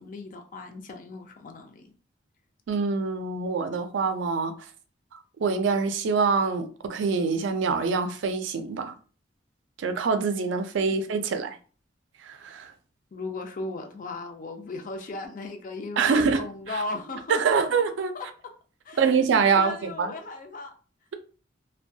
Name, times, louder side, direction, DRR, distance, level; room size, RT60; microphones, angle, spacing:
voice 1, 0.0-1.9 10.9-11.3 13.1-17.6 18.1-18.3 18.8-19.0 19.4-20.7, left 3 dB, 45° left, 0.4 m, -37 dB
voice 2, 2.7-4.7 5.4-9.0 9.8-11.6 12.2-12.7 16.0-16.8 17.3-18.1 19.0-20.1, right 5 dB, 75° right, 0.4 m, -25 dB
2.2 x 2.1 x 2.6 m
head